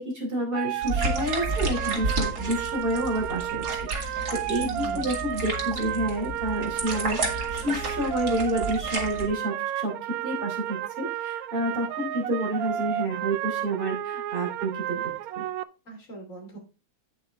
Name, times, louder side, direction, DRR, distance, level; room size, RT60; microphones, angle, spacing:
voice 1, 0.0-3.6 4.0-10.0 10.2-15.4, right 1 dB, 35° right, -1 dB, 3.8 m, -29 dB
sound 1, 0.5-15.6, right 11 dB, 75° right, 1.0 m, -32 dB
sound 2, 0.8-9.2, right 2 dB, 90° right, 2.5 m, -31 dB
voice 2, 4.5-5.2 15.8-16.6, right 5 dB, 55° left, 1 dB, 3.3 m, -40 dB
8.6 x 8.0 x 3.6 m, 0.32 s
omnidirectional pair, 1.7 m